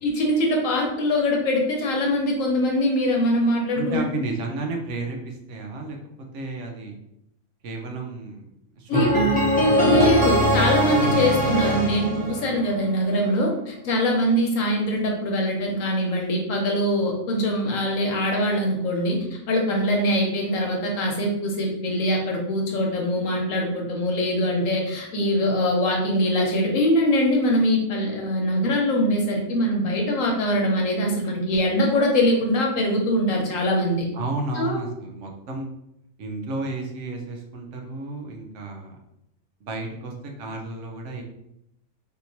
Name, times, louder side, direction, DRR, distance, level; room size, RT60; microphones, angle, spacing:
voice 1, 0.0-4.0 8.9-9.2 9.8-34.1 34.6-34.8, left 1 dB, 80° left, 0 dB, 1.2 m, -23 dB
voice 2, 3.7-6.0 6.3-7.0 7.6-8.5 8.8-10.2 34.1-35.7 36.2-39.0 39.6-41.2, right 3 dB, 65° right, 2 dB, 1.0 m, -32 dB
sound 1, 8.9-13.0, equal, 10° left, 0.6 m, -21 dB
3.6 x 2.9 x 2.7 m, 0.80 s
omnidirectional pair, 1.4 m